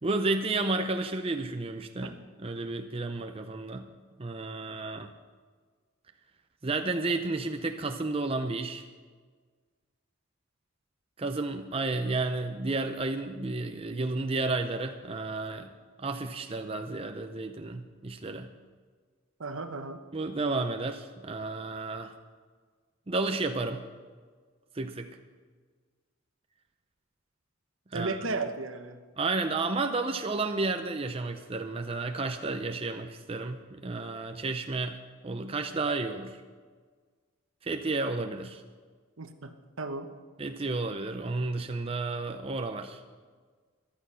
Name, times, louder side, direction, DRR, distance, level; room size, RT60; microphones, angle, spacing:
voice 1, 0.0-3.9 4.2-5.1 6.6-8.8 11.2-15.7 16.0-18.5 20.1-22.1 23.1-23.8 24.7-25.1 27.9-28.1 29.2-35.0 35.2-36.4 37.6-38.6 40.4-43.0, right 3 dB, 25° right, 6 dB, 0.6 m, -32 dB
voice 2, 19.4-20.0 27.9-29.0 39.2-39.5 39.8-40.1, right 3 dB, 70° right, 8 dB, 1.1 m, -34 dB
15.0 x 11.5 x 5.6 m, 1.5 s
head